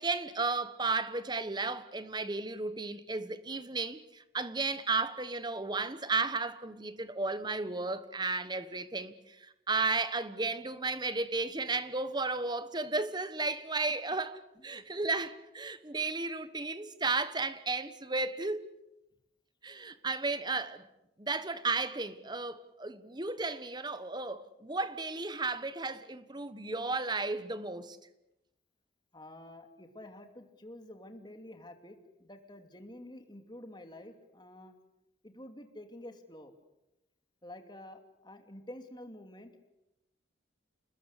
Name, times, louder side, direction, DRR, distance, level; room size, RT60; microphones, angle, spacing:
voice 1, 0.0-18.7 19.6-20.8 21.2-28.0, right 3 dB, 20° right, 1.2 m, -34 dB
voice 2, 14.5-14.9 29.1-34.7 35.2-36.5 37.4-39.7, left 1 dB, 20° left, 2.7 m, -49 dB
29.0 x 20.0 x 8.2 m
head